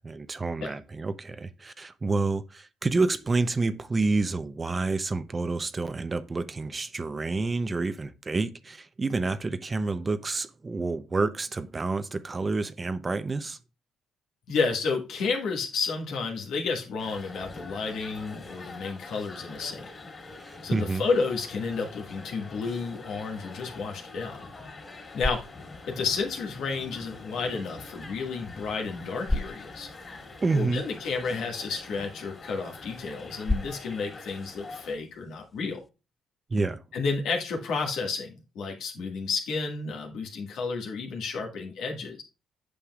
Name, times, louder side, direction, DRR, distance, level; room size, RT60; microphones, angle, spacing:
voice 1, 0.0-13.6 20.4-21.1 30.4-30.9 36.5-36.8, right 3 dB, 30° right, 0.6 m, -29 dB
voice 2, 14.5-19.9 20.6-24.4 25.1-25.4 25.9-29.9 30.5-35.8 36.9-42.2, left 4 dB, 75° left, 1.6 m, -31 dB
sound 1, 17.0-35.0, left 3 dB, 35° left, 2.9 m, -45 dB
sound 2, 24.8-35.9, left 2 dB, 15° left, 0.5 m, -38 dB
8.5 x 5.6 x 2.4 m
supercardioid pair, 60°, 0 cm